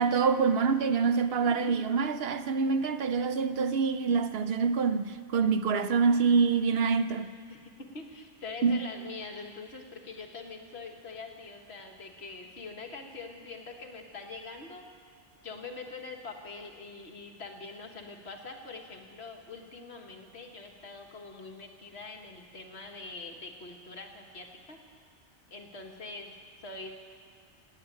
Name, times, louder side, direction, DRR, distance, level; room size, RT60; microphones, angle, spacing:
voice 1, 0.0-7.3 8.6-8.8, right 5 dB, 65° right, 0.8 m, -26 dB
voice 2, 1.0-1.7 7.5-14.8 15.4-24.8 25.5-26.9, left 3 dB, 65° left, 1.7 m, -44 dB
18.0 x 8.3 x 9.0 m
omnidirectional pair, 1.2 m